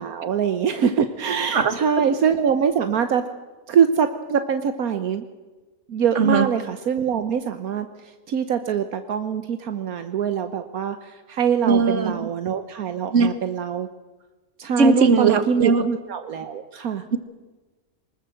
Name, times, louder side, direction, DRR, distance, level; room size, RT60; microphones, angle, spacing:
voice 1, 0.0-3.2 3.7-5.2 5.9-7.9 8.3-13.9 14.6-17.0, right 7 dB, 75° right, 9 dB, 1.4 m, -23 dB
voice 2, 1.5-2.1 6.2-6.5 11.6-12.3 13.1-13.4 14.8-15.8 17.1-17.2, right 4 dB, 55° right, 11 dB, 1.9 m, -19 dB
24.0 x 20.0 x 7.7 m, 1.3 s
omnidirectional pair, 1.5 m